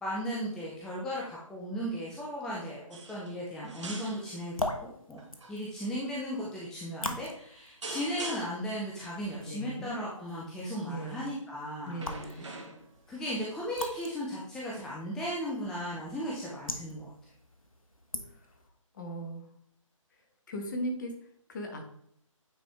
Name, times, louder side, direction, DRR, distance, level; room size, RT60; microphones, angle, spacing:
voice 1, 0.0-4.5 4.8-5.2 5.5-12.0 12.5-12.6 13.1-17.1, equal, 5° left, -5 dB, 0.5 m, -36 dB
sound 1, 2.9-3.4 3.6-4.5 5.2-5.5 6.4-6.6 7.8-8.7 10.8-11.1 11.9-13.0 14.1-14.2, right 3 dB, 60° right, 1.5 m, -43 dB
sound 2, 4.3-18.7, left 2 dB, 85° left, 1.2 m, -43 dB
voice 2, 9.4-10.0 10.8-11.3 11.8-12.5 18.3-18.5 18.9-19.4 20.5-21.2 21.5-21.8, equal, 35° left, 3 dB, 1.4 m, -38 dB
9.1 x 4.2 x 3.4 m, 0.68 s
figure-of-eight pair, 145°, 17 cm